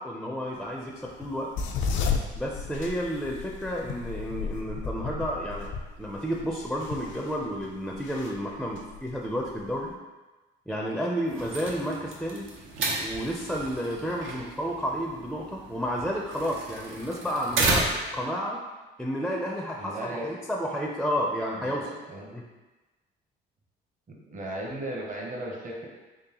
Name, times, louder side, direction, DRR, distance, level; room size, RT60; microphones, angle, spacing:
voice 1, 0.0-1.5 2.4-5.7 6.0-9.9 10.7-12.5 13.0-17.9 18.1-18.6 19.0-21.9 22.3-22.4, equal, ahead, -1 dB, 0.4 m, -31 dB
sound 1, 1.0-9.9, left 5 dB, 75° left, 0.4 m, -34 dB
sound 2, 11.3-18.2, right 2 dB, 80° right, 0.7 m, -32 dB
voice 2, 19.8-20.3 21.6-22.4 24.1-25.9, right 1 dB, 40° right, -1 dB, 0.8 m, -36 dB
3.8 x 3.2 x 2.9 m, 1.2 s
cardioid pair, 90°, 20 cm